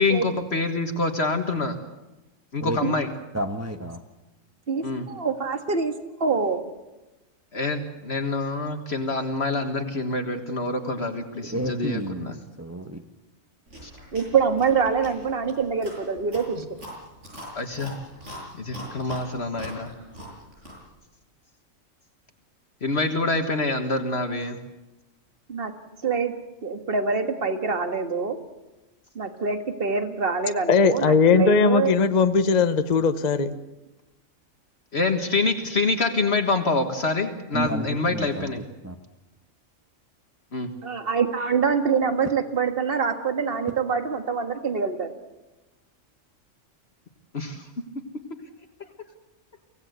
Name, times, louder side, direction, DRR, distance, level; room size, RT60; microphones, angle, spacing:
voice 1, 0.0-1.8 2.5-3.1 4.8-5.0 7.5-12.3 13.8-13.9 17.5-17.9 18.6-19.9 22.8-24.6 34.9-38.6 40.5-40.7 47.3-47.7, left 3 dB, 50° left, 5 dB, 1.7 m, -26 dB
voice 2, 3.3-4.0 11.4-13.0 37.5-39.0, right 1 dB, 15° right, 5 dB, 1.0 m, -31 dB
voice 3, 4.7-5.9 6.2-6.6 14.1-16.6 25.5-25.7 26.0-26.3 26.6-28.4 29.2-31.9 40.8-45.1, right 5 dB, 45° right, 7 dB, 1.9 m, -25 dB
Chewing mastication, 13.7-20.9, equal, 60° right, 8.2 m, -42 dB
voice 4, 30.7-33.5, left 5 dB, 35° left, 10 dB, 0.9 m, -19 dB
24.5 x 17.5 x 8.1 m, 1.0 s
omnidirectional pair, 1.4 m